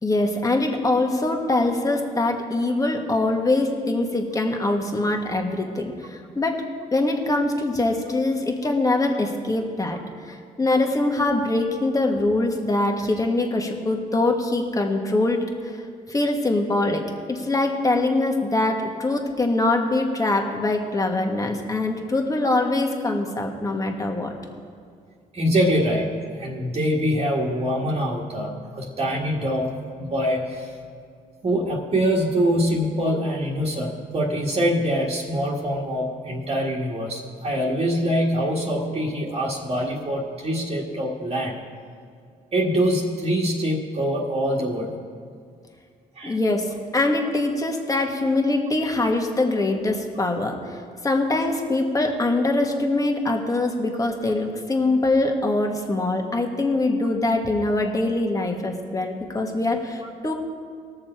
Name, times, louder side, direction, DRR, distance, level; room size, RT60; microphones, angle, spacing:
voice 1, 0.0-6.6 6.9-10.0 10.2-15.7 16.1-17.0 17.3-24.3 46.2-46.7 46.9-50.8 51.0-60.3, left 2 dB, 25° left, 2 dB, 1.7 m, -23 dB
voice 2, 25.3-30.8 31.4-41.5 42.5-45.0 46.1-46.4, equal, 40° right, -5 dB, 1.7 m, -24 dB
19.5 x 6.7 x 4.5 m, 2.2 s
cardioid pair, 75°, 15 cm